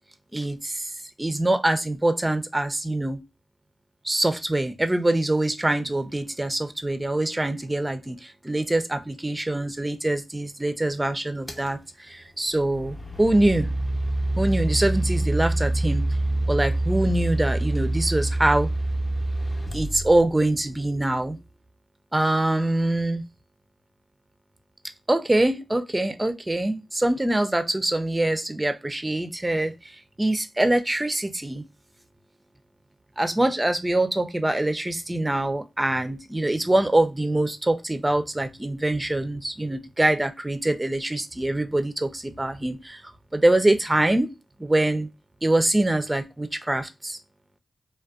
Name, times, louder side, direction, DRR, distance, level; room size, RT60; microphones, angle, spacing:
voice 1, 0.3-0.9 1.2-3.2 4.0-13.7 14.4-16.0 16.5-18.7 19.7-21.4 22.1-23.2 25.1-31.6 33.2-43.0 43.3-44.3 44.6-45.1 45.4-47.2, right 1 dB, 20° right, 9 dB, 0.4 m, -24 dB
sound 1, 11.5-11.7 12.6-20.6, right 1 dB, 25° left, 0.7 m, -26 dB
2.5 x 2.2 x 2.3 m, 0.23 s
cardioid pair, 50°, 0 cm